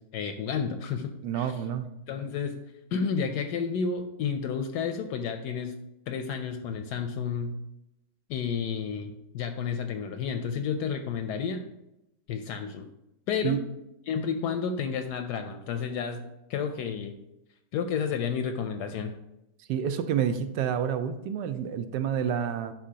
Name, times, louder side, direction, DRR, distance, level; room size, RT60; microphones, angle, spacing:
voice 1, 0.1-1.5 2.1-2.6 2.9-5.7 6.1-7.5 8.3-11.6 12.3-12.9 13.3-13.6 14.1-17.1 17.7-19.1, left 6 dB, 75° left, 7 dB, 1.0 m, -31 dB
voice 2, 1.2-1.9 13.4-13.6 19.7-22.7, right 8 dB, 75° right, 10 dB, 1.2 m, -28 dB
10.5 x 4.2 x 2.8 m, 0.89 s
omnidirectional pair, 2.0 m